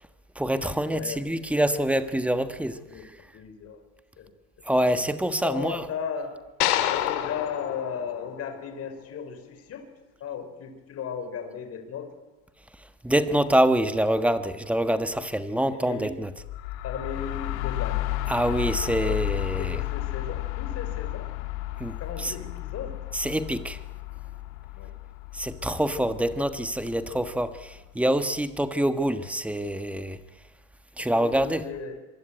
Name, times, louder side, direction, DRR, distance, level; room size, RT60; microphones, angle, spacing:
voice 1, 0.3-3.1 4.6-5.9 13.0-16.3 18.3-19.8 21.8-22.3 23.1-23.8 25.3-30.2 31.0-31.7, right 1 dB, 5° right, 1.4 m, -26 dB
voice 2, 0.9-1.2 2.9-3.1 3.3-3.8 4.2-4.3 5.3-6.3 6.9-9.8 10.2-12.1 15.5-16.2 16.8-18.1 18.9-19.3 19.6-21.3 22.0-23.0 24.8-24.9 31.0-32.0, left 6 dB, 30° left, 5.0 m, -36 dB
sound 1, 6.6-9.0, left 12 dB, 80° left, 3.2 m, -28 dB
sound 2, 16.4-28.0, left 16 dB, 55° left, 2.4 m, -33 dB
26.0 x 24.0 x 9.1 m
supercardioid pair, 145°, 45 cm